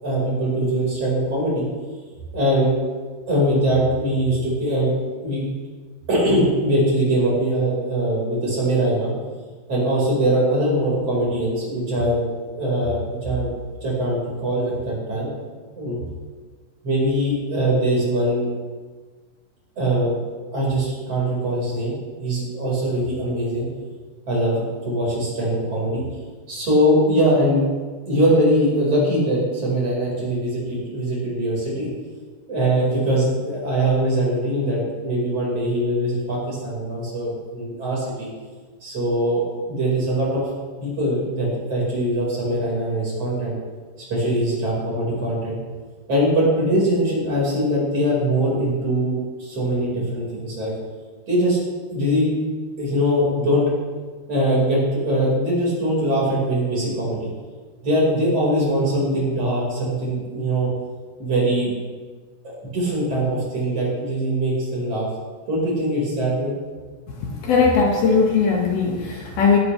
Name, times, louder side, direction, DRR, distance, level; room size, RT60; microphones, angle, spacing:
voice 1, 0.0-1.6 2.3-2.8 3.3-4.9 5.2-5.4 6.1-9.1 9.7-13.5 13.8-15.5 15.7-16.0 16.8-18.5 19.8-20.2 20.5-22.0 22.2-23.7 24.3-26.0 26.5-27.6 28.0-31.9 32.5-38.3 38.8-40.5 40.8-43.5 44.1-45.6 46.1-50.7 51.3-51.6 51.9-52.3 52.8-53.6 54.3-57.3 57.8-60.7 61.2-61.7 62.4-65.1 65.5-66.5, right 1 dB, 35° right, -5 dB, 5.5 m, -22 dB
voice 2, 67.2-69.6, left 5 dB, 65° left, -1 dB, 3.1 m, -19 dB
19.0 x 12.5 x 3.3 m, 1.4 s
omnidirectional pair, 4.9 m